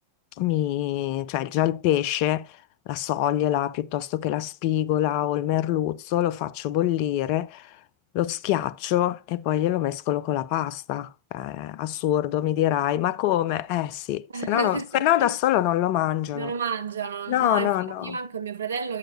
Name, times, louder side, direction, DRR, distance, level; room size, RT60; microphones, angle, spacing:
voice 1, 0.4-2.6 2.9-7.8 8.1-16.5 17.3-18.2, left 13 dB, 45° left, 0.5 m, -25 dB
voice 2, 14.3-15.4 16.3-17.7 18.0-19.0, right 5 dB, 70° right, 0.6 m, -31 dB
8.9 x 8.6 x 2.5 m
figure-of-eight pair, 90°, 0 cm